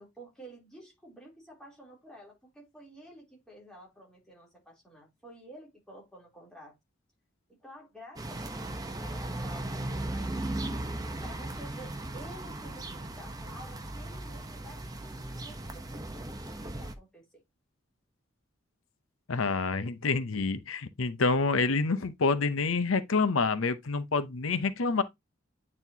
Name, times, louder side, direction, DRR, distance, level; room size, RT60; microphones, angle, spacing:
voice 1, 0.0-6.7 7.6-10.7 11.2-17.4, right 1 dB, 5° left, 3.1 m, -51 dB
sound 1, 8.2-16.9, right 1 dB, 20° right, 0.7 m, -37 dB
voice 2, 19.3-25.0, left 4 dB, 90° left, 0.7 m, -27 dB
9.1 x 4.2 x 2.7 m
head